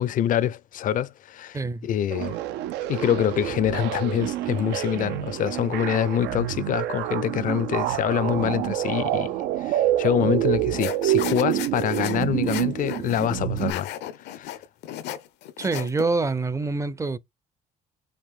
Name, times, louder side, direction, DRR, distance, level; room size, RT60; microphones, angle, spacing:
voice 1, 0.0-2.4 2.9-9.3 9.6-13.9 14.3-14.6, left 10 dB, 50° left, 0.5 m, -25 dB
voice 2, 1.5-1.9 15.6-17.2, right 3 dB, 15° right, 0.5 m, -26 dB
sound 1, 2.1-13.7, right 14 dB, 85° right, 0.6 m, -27 dB
sound 2, 10.8-16.0, left 12 dB, 80° left, 0.8 m, -35 dB
5.1 x 2.5 x 3.6 m
cardioid pair, 110°, 17 cm